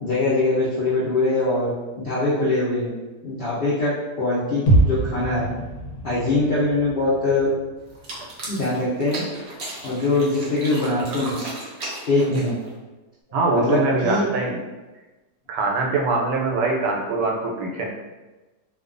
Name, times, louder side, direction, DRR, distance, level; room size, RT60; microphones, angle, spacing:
voice 1, 0.0-2.9 3.2-5.5 6.0-7.5 8.5-9.2 9.8-11.3 12.1-12.5 13.5-14.2, left 2 dB, 90° left, -9 dB, 0.5 m, -22 dB
sound 1, 4.7-8.6 8.9-9.0, right 2 dB, 70° left, 1.1 m, -24 dB
sound 2, 7.9-12.8, right 1 dB, 75° right, 0.5 m, -35 dB
voice 2, 13.3-14.6 15.5-17.9, right 3 dB, 90° right, -1 dB, 1.2 m, -23 dB
2.6 x 2.2 x 2.4 m, 1.1 s
omnidirectional pair, 1.8 m